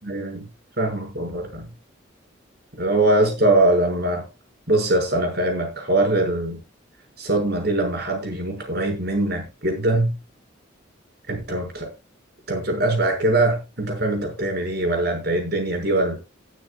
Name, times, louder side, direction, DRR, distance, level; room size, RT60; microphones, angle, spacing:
voice 1, 0.0-0.5 0.8-1.7 2.8-4.2 4.7-6.6 7.2-10.2 11.3-11.9 12.5-16.2, right 2 dB, 55° right, 6.3 m, -22 dB
20.0 x 9.3 x 2.4 m
head